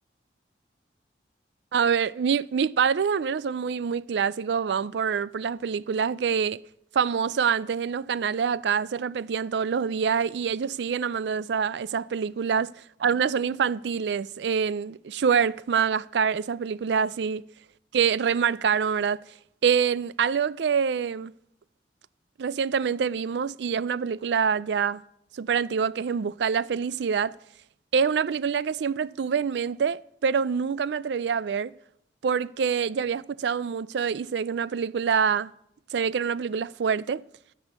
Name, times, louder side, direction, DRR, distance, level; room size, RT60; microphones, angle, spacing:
voice 1, 1.7-6.6 6.9-12.7 13.0-17.4 17.9-19.2 19.6-21.3 22.4-25.0 25.3-27.4 27.9-31.7 32.2-35.5 35.9-37.2, right 6 dB, 80° right, 0.4 m, -26 dB
14.0 x 6.2 x 8.1 m
head